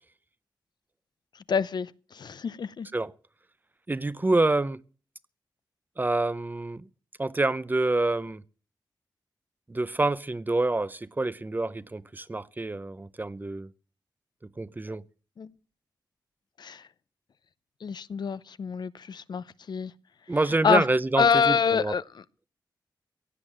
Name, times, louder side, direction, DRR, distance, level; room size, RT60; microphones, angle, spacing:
voice 1, 1.5-2.9 15.4-15.5 16.6-16.8 17.8-19.9 20.6-20.9 21.2-22.2, left 6 dB, 65° left, 0.7 m, -26 dB
voice 2, 3.9-4.8 6.0-6.8 7.2-8.4 9.7-13.7 14.6-15.0 20.3-21.9, right 2 dB, 25° right, 0.6 m, -27 dB
16.5 x 9.0 x 7.5 m
cardioid pair, 75°, 8 cm